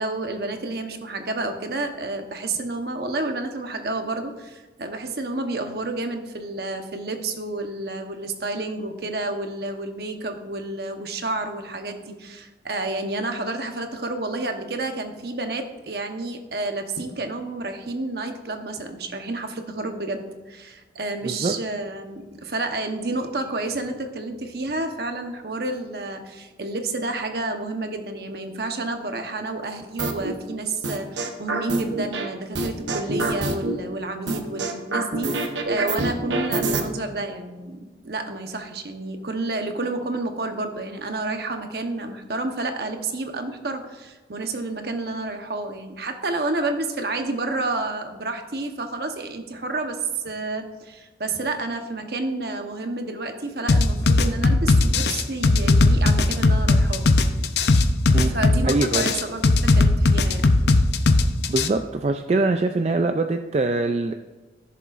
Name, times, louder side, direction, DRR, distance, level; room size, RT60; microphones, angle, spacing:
voice 1, 0.0-57.0 58.2-60.4, right 2 dB, 60° right, 5 dB, 1.0 m, -30 dB
sound 1, 30.0-30.3 30.8-32.3 32.5-33.8 34.3-36.8, right 2 dB, 90° right, 0.9 m, -25 dB
sound 2, 53.7-61.7, left 3 dB, 70° left, 0.6 m, -17 dB
voice 2, 58.6-59.1 61.5-64.1, right 3 dB, 35° right, 6 dB, 0.3 m, -23 dB
15.0 x 6.9 x 2.5 m, 1.2 s
head